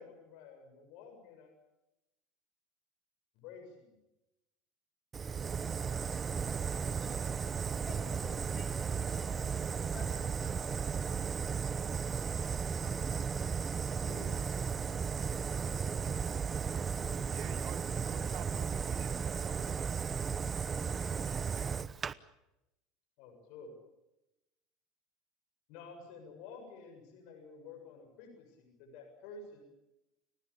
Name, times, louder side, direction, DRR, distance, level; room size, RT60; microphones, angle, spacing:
voice 1, 0.0-1.5 3.3-3.9 6.4-7.1 14.0-14.4 23.2-23.7 25.7-29.6, left 4 dB, 65° left, 3 dB, 7.3 m, -51 dB
Fire, 5.1-22.1, right 6 dB, 25° right, 0.9 m, -35 dB
voice 2, 6.8-7.2 7.8-9.4 9.9-10.8, left 4 dB, 30° left, 3 dB, 6.4 m, -52 dB
voice 3, 17.3-21.8, right 12 dB, 60° right, 6 dB, 2.9 m, -53 dB
30.0 x 18.0 x 8.6 m, 0.93 s
supercardioid pair, 125°, 0 cm